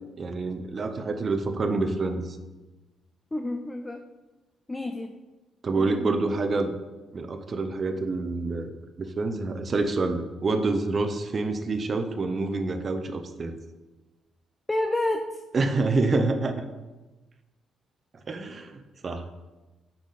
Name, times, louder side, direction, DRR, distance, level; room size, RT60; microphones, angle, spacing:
voice 1, 0.2-2.4 5.6-6.7 7.1-8.7 9.0-13.5 15.5-16.7 18.3-18.7 19.0-19.2, right 3 dB, 40° right, 8 dB, 0.7 m, -27 dB
voice 2, 3.3-4.0 4.7-5.1 5.7-6.1 14.7-15.4, left 1 dB, 15° left, 6 dB, 0.4 m, -29 dB
6.3 x 5.7 x 4.1 m, 1.2 s
cardioid pair, 90°, 0 cm